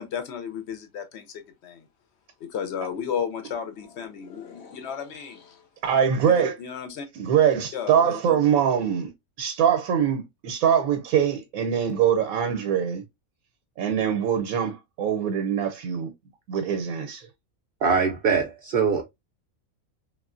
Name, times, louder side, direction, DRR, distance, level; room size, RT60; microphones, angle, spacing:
voice 1, 0.0-1.9 2.4-5.7 6.3-7.1 7.7-8.4, left 7 dB, 65° left, 0.7 m, -34 dB
voice 2, 5.8-6.5 7.2-9.1 9.4-13.0 13.8-16.1 16.5-17.3, right 8 dB, 80° right, 1.0 m, -23 dB
voice 3, 17.8-19.0, right 5 dB, 60° right, 0.6 m, -22 dB
3.2 x 2.4 x 2.4 m
omnidirectional pair, 1.5 m